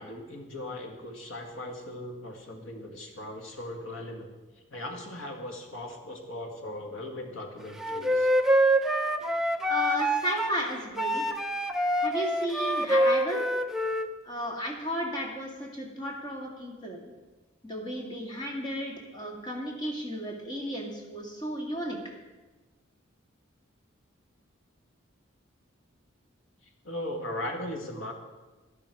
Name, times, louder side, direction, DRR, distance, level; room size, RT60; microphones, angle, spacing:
voice 1, 0.0-4.3 4.7-8.3 26.8-28.1, left 1 dB, 85° left, 2 dB, 1.8 m, -38 dB
Wind instrument woodwind instrument, 7.8-10.6 11.0-14.1, equal, ahead, 0.4 m, -26 dB
voice 2, 9.7-11.2 12.0-13.4 14.2-17.1 17.6-22.0, equal, 20° left, -1 dB, 2.1 m, -34 dB
12.5 x 12.0 x 4.8 m, 1.2 s
head